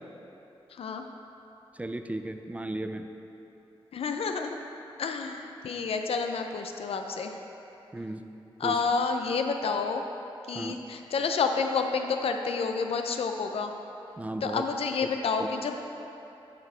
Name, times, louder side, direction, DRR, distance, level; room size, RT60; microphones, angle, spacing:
voice 1, 0.7-1.0 3.9-4.6 5.0-7.3 8.6-10.0 10.5-13.7 14.4-15.9, left 5 dB, 85° left, 5 dB, 0.5 m, -29 dB
voice 2, 1.8-3.1 7.9-8.2 8.6-8.8 10.5-10.8 14.2-14.6 15.4-15.5, right 1 dB, 15° right, 6 dB, 0.3 m, -35 dB
9.5 x 4.1 x 4.3 m, 3.0 s
wide cardioid pair, 90°, 10 cm